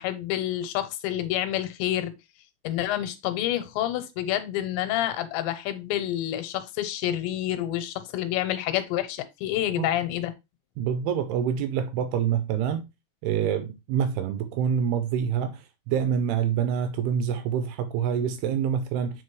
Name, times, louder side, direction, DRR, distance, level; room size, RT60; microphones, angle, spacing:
voice 1, 0.0-2.1 2.6-10.3, left 13 dB, 85° left, 3.1 m, -28 dB
voice 2, 10.8-12.9 13.2-19.2, right 8 dB, 80° right, 2.4 m, -26 dB
8.0 x 4.7 x 3.1 m
omnidirectional pair, 5.1 m